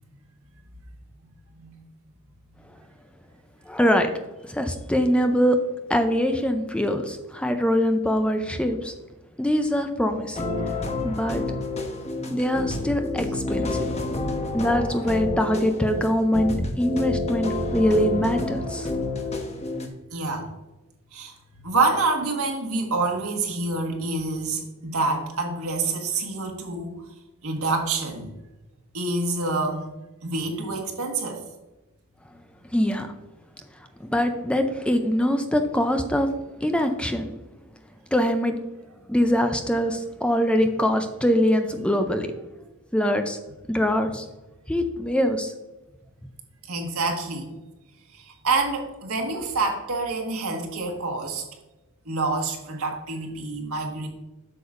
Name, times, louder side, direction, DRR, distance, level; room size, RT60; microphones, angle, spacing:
voice 1, 3.7-4.1 4.5-5.6 5.9-8.9 9.4-10.4 11.0-11.4 12.3-13.8 14.5-18.9 32.7-33.1 34.0-36.3 36.6-37.3 38.1-38.6 39.1-42.3 42.9-43.4 43.7-44.3 44.7-45.5, equal, 5° left, 6 dB, 0.4 m, -23 dB
sound 1, 10.3-19.9, left 2 dB, 30° left, 1.0 m, -29 dB
voice 2, 20.1-20.5 21.1-21.3 21.6-27.0 27.4-28.3 28.9-29.9 30.2-31.4 46.7-47.5 48.1-51.4 52.0-54.1, right 3 dB, 75° right, 2 dB, 1.6 m, -27 dB
7.8 x 6.9 x 2.5 m, 1.0 s
head